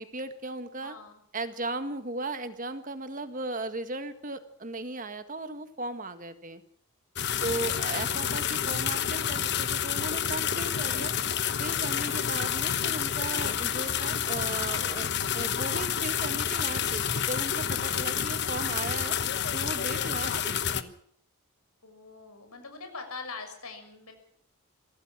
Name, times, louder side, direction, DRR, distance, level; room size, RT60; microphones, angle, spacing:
voice 1, 0.0-1.0 1.3-6.6 7.4-11.1 11.6-15.1 15.3-19.2 19.5-20.9, right 2 dB, 35° right, 9 dB, 1.7 m, -36 dB
voice 2, 0.8-1.2 10.5-10.9 18.0-18.1 20.2-20.6 21.8-24.1, left 4 dB, 90° left, 7 dB, 6.5 m, -44 dB
sound 1, 7.2-20.8, left 8 dB, 50° left, 1.2 m, -29 dB
24.5 x 16.5 x 7.4 m, 0.66 s
head